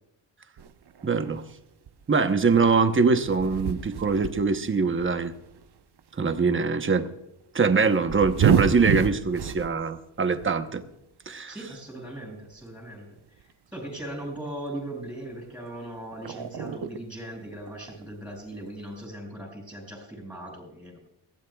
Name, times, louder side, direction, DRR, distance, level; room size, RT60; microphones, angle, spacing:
sound 1, 0.6-1.5 1.9-6.1 6.4-6.7 7.7-9.7 10.1-10.7 11.8-11.9 12.3-12.4 12.8-12.9 13.2-14.5 15.6-15.7 16.0-17.1 17.7-18.1, right 8 dB, 60° right, 0.9 m, -30 dB
voice 1, 1.0-1.4 2.1-5.3 6.2-7.1 7.5-10.8 11.3-11.5, right 4 dB, 25° right, 8 dB, 0.9 m, -23 dB
voice 2, 11.5-21.0, right 1 dB, 5° right, 2 dB, 6.0 m, -39 dB
21.5 x 16.5 x 2.3 m, 0.87 s
wide cardioid pair, 150°, 45 cm